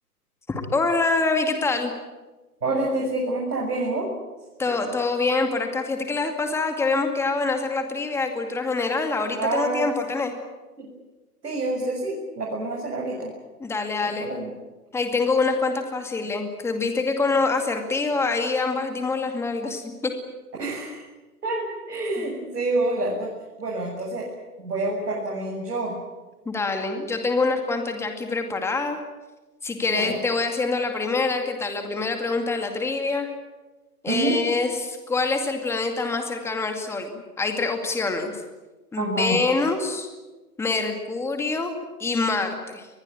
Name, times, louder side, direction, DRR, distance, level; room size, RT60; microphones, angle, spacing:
voice 1, 0.5-1.9 4.6-10.3 13.6-14.3 14.9-20.1 20.6-20.7 26.5-29.0 29.6-33.3 34.0-38.3 38.9-40.1 40.6-42.9, left 3 dB, 5° left, 5 dB, 2.3 m, -25 dB
voice 2, 2.6-4.1 4.7-4.9 9.4-9.9 10.8-10.9 11.4-13.3 14.0-14.5 20.6-21.0 21.4-23.3 23.6-24.3 24.6-26.0 29.9-30.2 34.1-34.4 39.0-39.4, right 2 dB, 90° right, -2 dB, 7.3 m, -27 dB
24.0 x 21.0 x 9.1 m, 1.2 s
hypercardioid pair, 145°, 46 cm